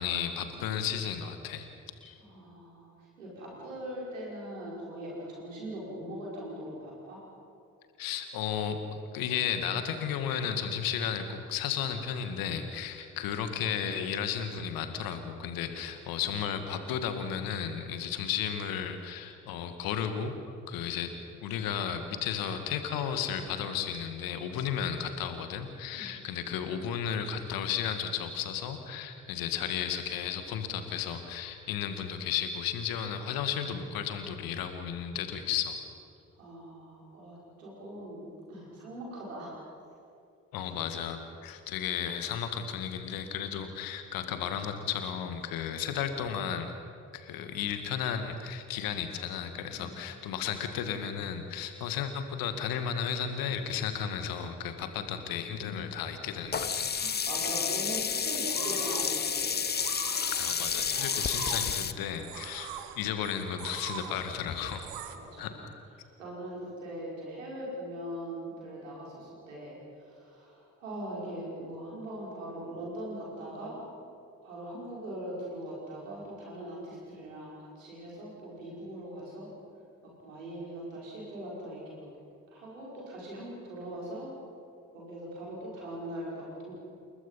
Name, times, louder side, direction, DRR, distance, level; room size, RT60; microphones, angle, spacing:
voice 1, 0.0-1.7 2.0-2.2 8.0-8.8 9.1-20.3 20.7-21.1 21.4-35.8 40.5-46.7 47.1-56.9 60.3-64.9 65.4-65.8, left 8 dB, 65° left, 8 dB, 2.0 m, -34 dB
voice 2, 2.2-2.9 3.2-7.2 25.9-26.1 36.4-39.6 40.6-40.7 49.7-50.0 57.0-59.6 65.1-65.5 66.2-73.8 74.4-79.5 80.0-82.1 82.5-84.3 84.9-86.7, right 1 dB, 80° right, -4 dB, 5.4 m, -41 dB
Sink (filling or washing), 56.5-61.9, left 6 dB, 25° left, 0.9 m, -30 dB
sound 1, 57.9-65.2, right 9 dB, 65° right, 1.4 m, -44 dB
29.0 x 20.0 x 5.7 m, 2.5 s
figure-of-eight pair, 40°, 38 cm